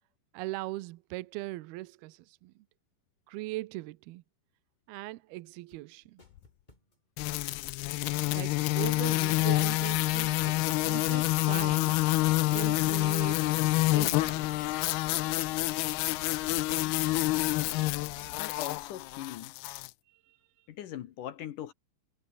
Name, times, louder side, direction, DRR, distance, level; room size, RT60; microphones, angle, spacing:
voice 1, 0.3-2.5 3.3-4.2 4.9-6.2 8.3-12.0 12.5-13.6 13.9-14.7 20.1-20.7, right 18 dB, 85° right, 2.6 m, -40 dB
sound 1, 5.7-17.3 17.6-17.7, left 1 dB, 10° left, 5.1 m, -57 dB
sound 2, 7.2-19.9, left 20 dB, 85° left, 2.7 m, -28 dB
Insect / Frog, 9.2-18.4, left 5 dB, 30° left, 2.2 m, -51 dB
voice 2, 18.4-19.6 20.7-21.7, left 11 dB, 65° left, 2.3 m, -40 dB
omnidirectional pair, 4.5 m